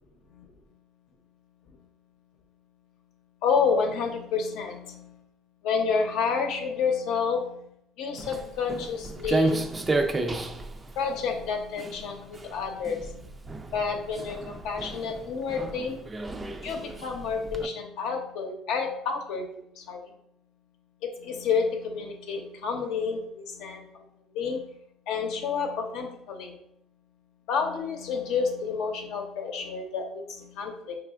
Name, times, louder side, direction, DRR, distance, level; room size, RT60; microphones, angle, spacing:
voice 1, 3.4-5.2 5.6-7.7 8.0-9.6 11.0-13.3 13.7-16.0 16.6-19.5 19.8-20.0 21.2-23.9 24.3-24.7 25.1-26.6 27.5-31.0, left 5 dB, 75° left, 2 dB, 0.7 m, -29 dB
Walk footsteps, 8.2-17.7, right 2 dB, 20° right, 0.4 m, -32 dB
5.0 x 3.3 x 2.4 m, 0.73 s
cardioid pair, 110°, 0 cm